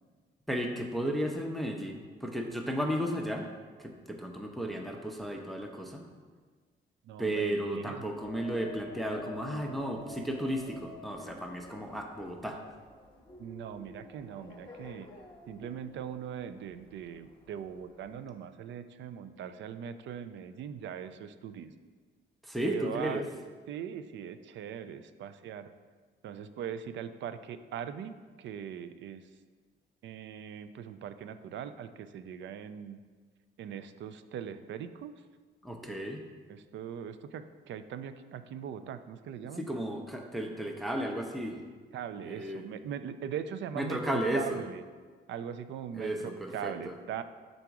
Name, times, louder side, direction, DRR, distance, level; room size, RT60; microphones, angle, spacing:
voice 1, 0.5-3.5 3.8-6.0 7.2-12.6 22.4-23.2 35.6-36.2 39.6-41.6 42.3-42.6 43.8-44.6 45.9-46.9, right 1 dB, ahead, 2 dB, 0.6 m, -34 dB
voice 2, 7.0-8.0 13.4-15.1 15.5-21.7 22.6-23.3 23.7-25.7 26.2-29.3 30.0-33.0 33.6-35.2 36.5-39.7 41.9-44.8 45.3-47.2, right 8 dB, 70° right, 11 dB, 0.4 m, -40 dB
sound 1, 8.2-18.2, left 2 dB, 25° left, 1.0 m, -48 dB
5.9 x 3.9 x 4.6 m, 1.5 s
cardioid pair, 90°, 20 cm